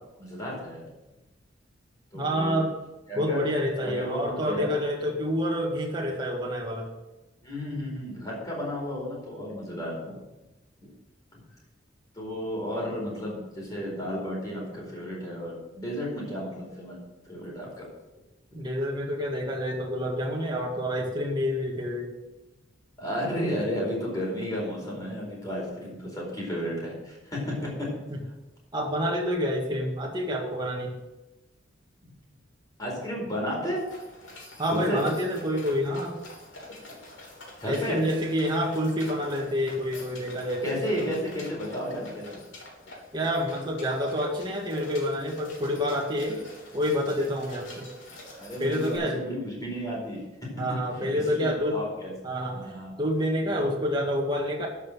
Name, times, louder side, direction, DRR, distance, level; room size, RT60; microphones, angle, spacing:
voice 1, 0.2-0.9 2.1-2.6 3.1-3.4 3.8-4.7 7.4-10.2 10.8-10.9 12.1-17.0 17.2-17.9 18.5-18.6 23.0-27.9 32.0-32.1 32.8-33.8 34.9-35.0 37.6-38.0 40.6-42.3 48.4-50.5 50.9-52.1 52.5-52.9, equal, 20° left, -4 dB, 4.5 m, -33 dB
voice 2, 2.1-2.7 3.2-6.9 18.5-22.1 28.1-28.2 28.7-30.9 34.6-36.2 37.6-41.1 43.1-46.4 46.7-47.9 48.6-49.2 50.6-51.8 52.2-52.6 53.0-54.7, equal, 25° right, -1 dB, 1.9 m, -28 dB
sound 1, 33.8-49.0, left 2 dB, 80° left, 3.6 m, -46 dB
12.0 x 5.6 x 6.3 m, 1.0 s
head